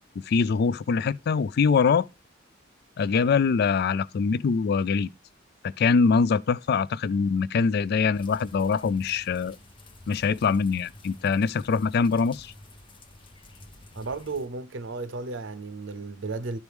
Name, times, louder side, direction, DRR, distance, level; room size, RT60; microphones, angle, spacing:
voice 1, 0.2-2.1 3.0-5.1 5.6-9.6 10.1-12.5, left 5 dB, 55° left, 0.3 m, -23 dB
sound 1, 8.1-14.5, left 2 dB, 25° left, 0.7 m, -49 dB
voice 2, 13.9-16.6, right 3 dB, 70° right, 0.7 m, -34 dB
11.5 x 4.7 x 3.4 m
head